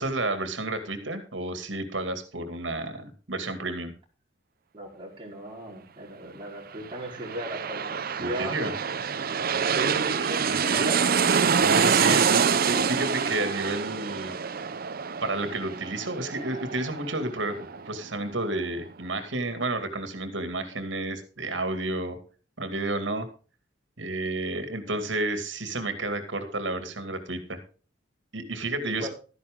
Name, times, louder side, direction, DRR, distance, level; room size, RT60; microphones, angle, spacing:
voice 1, 0.0-3.9 8.2-8.7 10.5-10.9 11.6-14.3 15.2-22.2 22.6-23.3 24.0-27.6 28.3-29.1, right 2 dB, 80° right, 8 dB, 2.5 m, -31 dB
voice 2, 4.7-8.7 9.3-11.0 28.8-29.1, right 1 dB, 30° right, -2 dB, 4.4 m, -36 dB
sound 1, 6.9-18.3 18.6-18.7, right 6 dB, 55° right, 0.7 m, -26 dB
13.0 x 10.5 x 3.8 m, 0.37 s
head